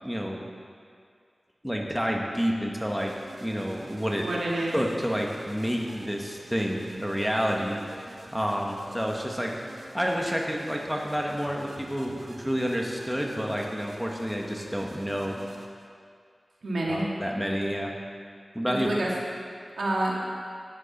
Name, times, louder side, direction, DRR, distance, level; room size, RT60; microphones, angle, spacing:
voice 1, 0.0-0.4 1.6-3.1 3.4-4.3 4.7-7.8 8.3-9.6 9.9-15.4 16.9-17.9 18.5-18.9, equal, ahead, 0 dB, 1.5 m, -29 dB
sound 1, 2.9-15.7, right 2 dB, 70° right, 1.4 m, -48 dB
voice 2, 4.2-4.8 16.6-17.1 18.7-19.1 19.8-20.4, right 1 dB, 90° right, -4 dB, 2.1 m, -28 dB
13.0 x 9.7 x 4.3 m, 2.2 s
wide cardioid pair, 55°, 0 cm